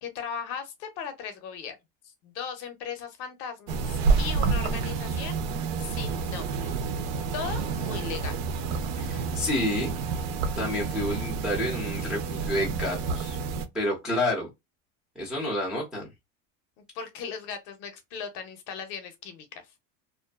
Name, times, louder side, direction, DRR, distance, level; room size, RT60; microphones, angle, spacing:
voice 1, 0.0-1.8 2.2-5.4 5.8-6.7 7.3-8.3 16.9-19.5, left 6 dB, 40° left, 0.6 m, -37 dB
sound 1, 3.7-13.7, right 4 dB, 70° right, 0.6 m, -29 dB
voice 2, 9.0-10.0 10.6-13.4 13.7-14.5 15.2-16.1, left 1 dB, ahead, 0.4 m, -29 dB
2.5 x 2.3 x 2.3 m
supercardioid pair, 160°, 38 cm